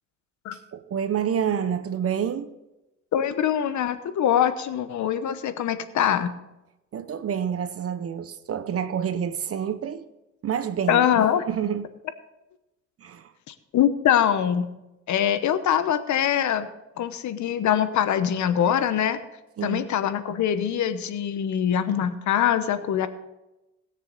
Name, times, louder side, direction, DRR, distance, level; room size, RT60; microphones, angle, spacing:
voice 1, 0.5-2.5 6.9-10.1 10.4-11.1 11.5-11.9 13.0-13.3 19.6-19.9, right 8 dB, 50° right, 0.9 m, -28 dB
voice 2, 3.1-6.3 10.9-11.4 13.5-14.7 15.1-16.7 17.0-19.2 19.6-23.1, left 9 dB, 70° left, 1.0 m, -23 dB
19.5 x 6.8 x 4.0 m
cardioid pair, 90°, 30 cm